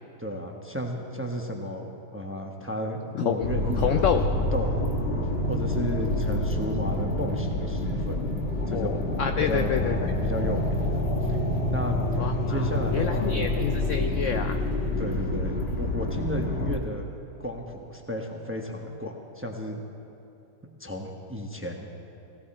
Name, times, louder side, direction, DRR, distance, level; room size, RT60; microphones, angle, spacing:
voice 1, 0.2-4.9 5.4-8.3 8.6-9.1 9.5-9.7 10.2-11.4 11.7-12.2 12.5-13.8 15.0-17.1 17.4-19.8 20.8-21.9, equal, 10° right, 2 dB, 0.9 m, -33 dB
voice 2, 3.1-3.5 3.8-4.3 8.7-10.0 12.2-14.6, left 9 dB, 70° left, 7 dB, 0.7 m, -28 dB
sound 1, 3.4-16.8, left 1 dB, 40° left, 1.3 m, -27 dB
17.5 x 17.0 x 4.3 m, 3.0 s
omnidirectional pair, 1.8 m